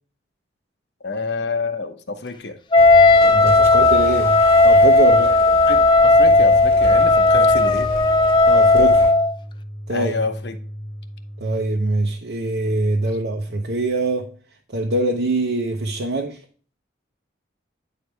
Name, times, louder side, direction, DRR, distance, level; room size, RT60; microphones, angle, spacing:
voice 1, 1.0-2.6 5.7-7.9 9.9-10.6, left 3 dB, 60° left, 9 dB, 0.9 m, -28 dB
Wind instrument woodwind instrument, 2.7-9.3, left 2 dB, 25° left, 0.3 m, -14 dB
sound 1, 2.8-9.1, equal, 15° right, 1.5 m, -34 dB
voice 2, 3.3-5.4 8.5-9.1 9.9-10.1 11.4-14.3 14.7-16.4, right 2 dB, 65° right, 1 dB, 0.8 m, -23 dB
sound 2, 6.1-12.1, equal, 90° left, 1.8 m, -35 dB
9.3 x 4.6 x 3.4 m, 0.43 s
head